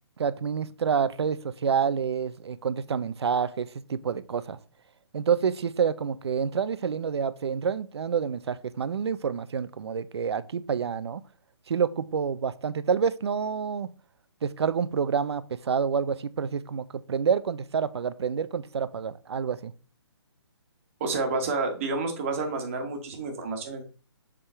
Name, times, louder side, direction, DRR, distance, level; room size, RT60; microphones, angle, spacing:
voice 1, 0.2-4.6 5.1-11.2 11.7-13.9 14.4-19.7, right 6 dB, 70° right, 15 dB, 0.6 m, -28 dB
voice 2, 21.0-23.8, right 3 dB, 30° right, 4 dB, 1.3 m, -29 dB
6.8 x 3.6 x 4.3 m, 0.37 s
hypercardioid pair, 170°, 14 cm